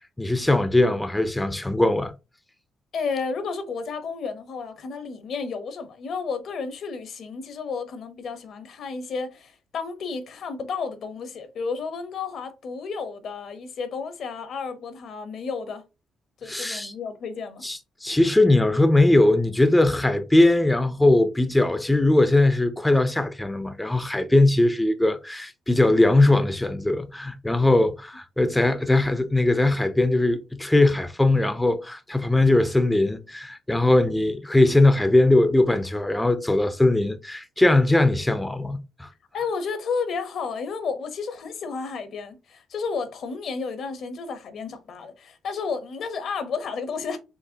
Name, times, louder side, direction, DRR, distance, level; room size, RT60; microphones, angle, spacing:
voice 1, 0.2-2.1 16.5-16.9 17.6-39.1, left 2 dB, 10° left, 0.5 m, -20 dB
voice 2, 2.9-15.8 16.4-17.6 27.6-27.8 39.3-47.2, left 5 dB, 65° left, 0.8 m, -32 dB
4.7 x 3.1 x 2.8 m
cardioid pair, 90°, 0 cm